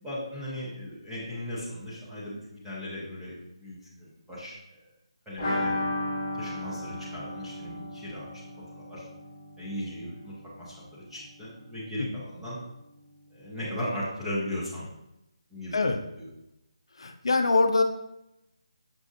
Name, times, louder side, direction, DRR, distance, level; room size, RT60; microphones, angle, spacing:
voice 1, 0.0-4.8 5.3-5.7 6.3-8.4 8.8-9.0 9.6-12.6 13.3-14.9 15.5-15.9 16.2-16.3, left 1 dB, ahead, -11 dB, 0.5 m, -37 dB
sound 1, 5.4-11.0 11.2-11.3 11.6-11.7, left 1 dB, 15° left, 1.4 m, -34 dB
voice 2, 17.0-17.8, left 3 dB, 60° left, 6 dB, 0.4 m, -23 dB
6.1 x 2.5 x 2.5 m, 0.87 s
hypercardioid pair, 175°, 3 cm